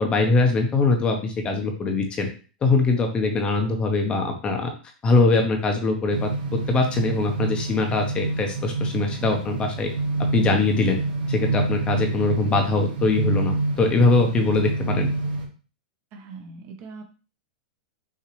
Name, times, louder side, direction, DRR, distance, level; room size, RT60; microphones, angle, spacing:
voice 1, 0.0-2.3 2.6-4.7 5.0-6.3 6.7-9.9 10.3-11.0 11.3-15.1, left 3 dB, 20° left, 4 dB, 0.9 m, -22 dB
sound 1, 6.1-15.4, right 2 dB, 85° right, 1.3 m, -27 dB
voice 2, 16.1-17.0, right 4 dB, 40° right, 3 dB, 1.0 m, -41 dB
5.7 x 2.9 x 3.1 m, 0.36 s
hypercardioid pair, 140°, 5 cm